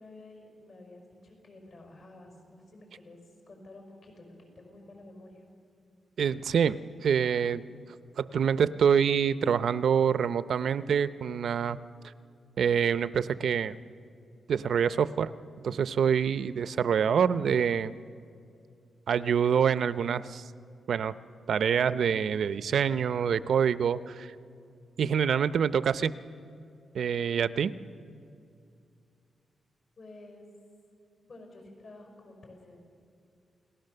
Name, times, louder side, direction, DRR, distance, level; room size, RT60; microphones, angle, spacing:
voice 1, 0.0-3.2 3.5-5.4 30.0-30.5 31.3-32.8, left 2 dB, 55° left, 2 dB, 5.4 m, -50 dB
voice 2, 6.2-6.8 7.0-7.6 8.2-11.8 12.6-13.8 14.5-15.3 15.6-17.9 19.1-20.5 20.9-21.1 21.5-24.3 25.0-26.1 26.9-27.7, right 7 dB, 75° right, 14 dB, 0.6 m, -26 dB
29.0 x 18.5 x 6.7 m, 2.5 s
cardioid pair, 100°, 0 cm